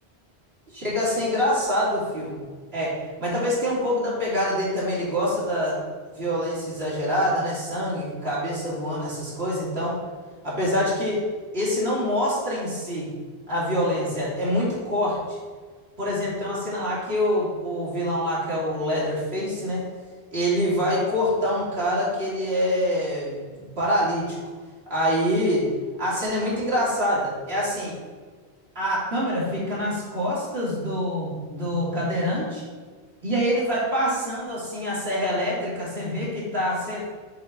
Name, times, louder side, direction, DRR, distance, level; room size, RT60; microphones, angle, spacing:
voice 1, 0.7-2.4 2.7-5.8 6.1-10.0 10.4-11.2 11.5-13.1 13.5-15.4 16.0-19.8 20.3-23.5 23.8-24.5 24.9-25.7 26.0-28.0 28.7-32.6 33.2-37.0, equal, 65° right, -7 dB, 3.0 m, -25 dB
7.0 x 4.4 x 6.2 m, 1.5 s
omnidirectional pair, 1.1 m